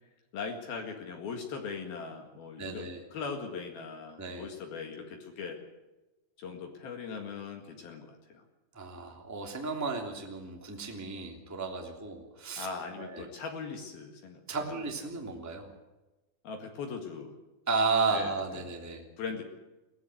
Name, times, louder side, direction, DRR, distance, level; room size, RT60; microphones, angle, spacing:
voice 1, 0.3-5.6 6.4-8.4 12.5-14.8 16.4-17.3 18.1-18.6 19.2-19.4, left 5 dB, 60° left, 4 dB, 3.4 m, -40 dB
voice 2, 2.6-3.0 4.2-4.5 8.7-12.7 13.0-13.2 14.5-15.7 17.7-19.0, right 4 dB, 5° right, 2 dB, 1.9 m, -33 dB
22.0 x 17.5 x 7.8 m, 1.1 s
omnidirectional pair, 5.6 m